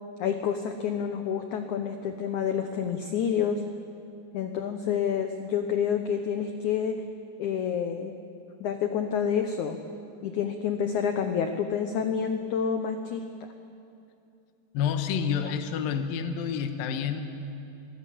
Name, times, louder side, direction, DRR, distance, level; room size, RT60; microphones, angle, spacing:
voice 1, 0.2-3.6 4.3-7.0 7.4-8.1 8.6-9.8 10.2-13.2, left 7 dB, 90° left, 6 dB, 1.7 m, -28 dB
voice 2, 14.7-17.2, left 7 dB, 70° left, 7 dB, 2.6 m, -28 dB
25.0 x 19.0 x 8.5 m, 2.6 s
omnidirectional pair, 4.9 m